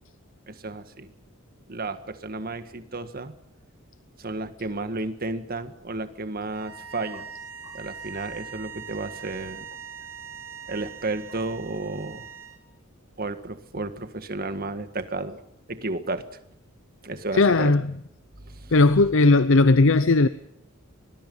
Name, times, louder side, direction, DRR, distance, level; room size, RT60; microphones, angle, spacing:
voice 1, 0.5-1.1 1.7-3.3 4.2-7.3 7.7-9.7 10.7-12.3 13.2-15.4 15.7-16.2 17.0-17.7 18.4-18.7, right 2 dB, 45° right, 1.7 m, -32 dB
sound 1, 6.5-12.6, right 6 dB, 65° right, 4.8 m, -41 dB
voice 2, 17.4-17.8 18.7-20.3, left 3 dB, 65° left, 0.7 m, -17 dB
25.5 x 20.5 x 5.6 m
head